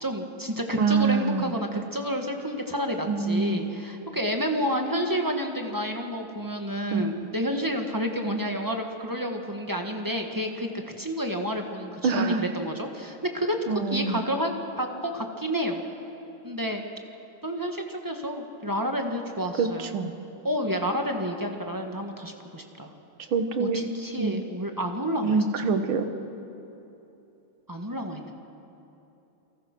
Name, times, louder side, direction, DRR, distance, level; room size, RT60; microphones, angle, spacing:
voice 1, 0.0-14.5 14.8-15.8 16.4-16.8 17.4-19.9 20.4-22.9 23.6-25.4 27.7-28.3, equal, 10° right, 3 dB, 1.3 m, -30 dB
voice 2, 0.8-1.6 3.1-3.6 6.9-7.3 12.0-12.5 13.7-14.2 19.6-20.1 23.3-23.9 24.2-24.4 25.2-26.1, right 4 dB, 70° right, 8 dB, 2.0 m, -25 dB
28.5 x 21.0 x 6.1 m, 3.0 s
omnidirectional pair, 2.4 m